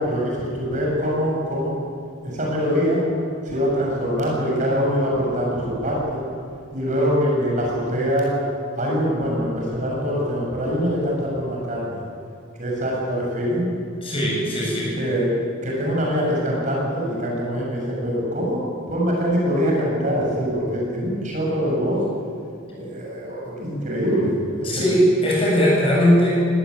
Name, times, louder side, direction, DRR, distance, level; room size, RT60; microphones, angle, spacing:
voice 1, 0.0-1.7 2.2-3.0 3.4-6.2 6.7-8.3 8.7-12.0 12.6-13.7 15.0-15.3 15.6-18.6 18.9-22.0 22.7-24.9, equal, 35° right, -3 dB, 6.5 m, -23 dB
voice 2, 14.0-15.0 24.6-26.4, equal, 25° left, -5 dB, 7.7 m, -19 dB
19.5 x 16.5 x 9.5 m, 2.3 s
head